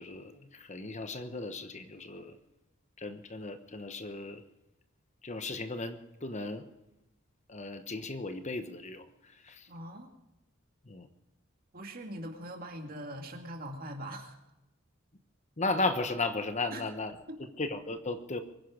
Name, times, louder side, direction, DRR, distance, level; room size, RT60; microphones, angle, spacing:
voice 1, 0.0-2.4 3.0-4.4 5.2-6.7 7.5-9.7 10.8-11.1 15.6-18.4, left 3 dB, 35° left, 9 dB, 1.2 m, -36 dB
voice 2, 9.7-10.1 11.7-14.4 16.7-16.8 17.3-17.4, right 1 dB, 45° right, 3 dB, 2.4 m, -42 dB
24.0 x 10.5 x 5.1 m, 0.92 s
head